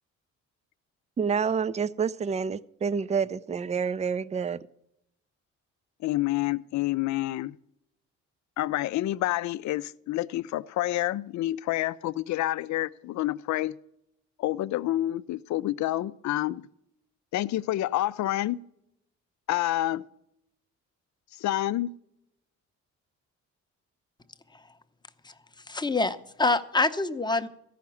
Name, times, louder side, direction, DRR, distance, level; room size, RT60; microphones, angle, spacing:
voice 1, 1.2-4.6, right 6 dB, 25° right, 0.4 m, -28 dB
voice 2, 6.0-7.6 8.6-13.7 14.4-16.7 17.3-18.6 19.5-20.0 21.4-21.9, left 15 dB, 65° left, 0.5 m, -28 dB
voice 3, 25.7-27.5, left 3 dB, 15° left, 0.7 m, -26 dB
14.0 x 5.8 x 8.4 m
cardioid pair, 90°, 30 cm